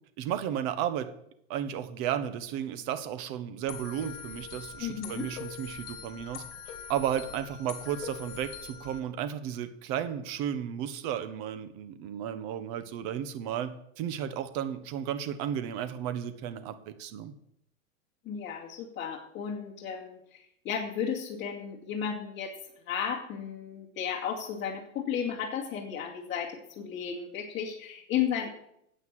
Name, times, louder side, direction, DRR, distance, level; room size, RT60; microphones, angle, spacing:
voice 1, 0.2-1.1 1.5-17.3, right 9 dB, 45° right, 11 dB, 1.3 m, -34 dB
sound 1, 3.7-9.0, left 7 dB, 50° left, 2.8 m, -43 dB
voice 2, 4.8-5.3 18.2-22.5 22.9-28.5, left 8 dB, 30° left, -5 dB, 2.4 m, -34 dB
9.7 x 8.4 x 7.8 m, 0.75 s
supercardioid pair, 135°, 39 cm